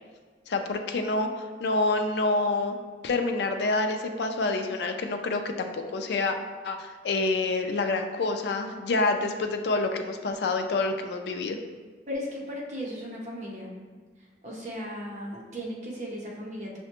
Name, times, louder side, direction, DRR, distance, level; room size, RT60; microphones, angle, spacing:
voice 1, 0.5-2.8 3.0-6.4 6.6-11.6, left 3 dB, 70° left, 6 dB, 0.4 m, -27 dB
voice 2, 12.1-13.7 14.4-16.8, equal, 40° right, -3 dB, 0.7 m, -36 dB
5.6 x 2.2 x 2.9 m, 1.5 s
head